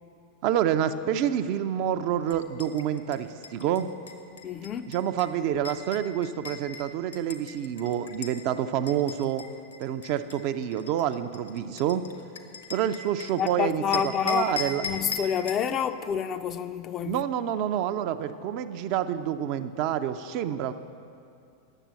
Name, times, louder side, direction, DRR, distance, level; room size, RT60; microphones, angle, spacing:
voice 1, 0.4-3.9 4.9-9.4 9.8-12.0 12.7-14.8 17.0-20.7, right 10 dB, 45° right, 0.4 m, -28 dB
sound 1, 2.3-8.4 8.9-13.5 13.9-15.7, left 5 dB, 70° left, 0.8 m, -39 dB
voice 2, 4.4-4.9 13.4-17.2, left 8 dB, 30° left, 0.4 m, -28 dB
9.9 x 7.3 x 7.1 m
figure-of-eight pair, 90°, 0 cm